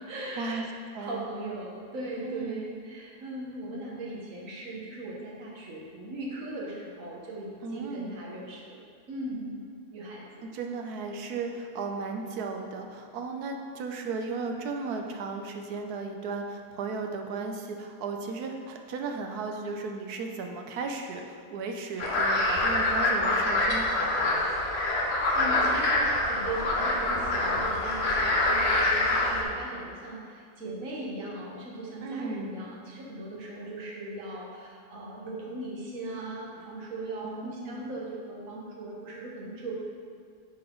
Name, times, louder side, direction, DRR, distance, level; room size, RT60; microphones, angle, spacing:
voice 1, 0.1-0.6 1.0-10.4 25.1-26.0 26.3-39.8, right 2 dB, 60° right, -4 dB, 1.6 m, -39 dB
voice 2, 0.9-1.3 2.2-2.7 7.6-8.2 10.4-24.5 32.0-32.6 37.2-37.8, right 4 dB, 85° right, 4 dB, 1.2 m, -35 dB
sound 1, 22.0-29.4, left 2 dB, 50° left, 1.1 m, -25 dB
9.9 x 4.3 x 3.8 m, 2.1 s
omnidirectional pair, 1.6 m